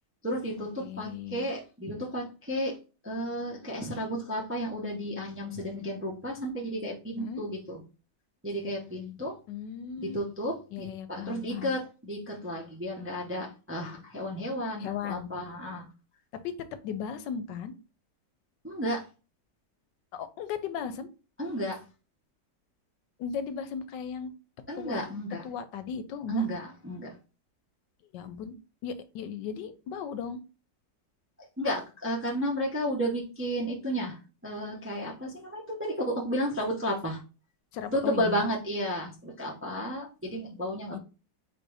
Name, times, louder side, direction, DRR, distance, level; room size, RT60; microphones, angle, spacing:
voice 1, 0.2-2.8 3.0-7.8 8.4-9.3 10.0-15.9 18.6-19.0 21.4-21.8 24.7-25.4 26.3-27.1 31.6-34.2 34.4-37.2 37.9-41.0, equal, 15° right, -2 dB, 0.4 m, -32 dB
voice 2, 0.8-1.5 7.2-7.5 9.5-10.2 10.7-11.7 14.8-15.3 16.3-16.5 16.8-17.7 20.1-21.1 23.2-24.3 24.8-25.0 25.4-26.5 28.1-28.6 28.8-30.4 37.7-38.5 40.9-41.0, left 7 dB, 85° left, 11 dB, 1.3 m, -36 dB
4.0 x 2.6 x 4.7 m, 0.33 s
omnidirectional pair, 1.9 m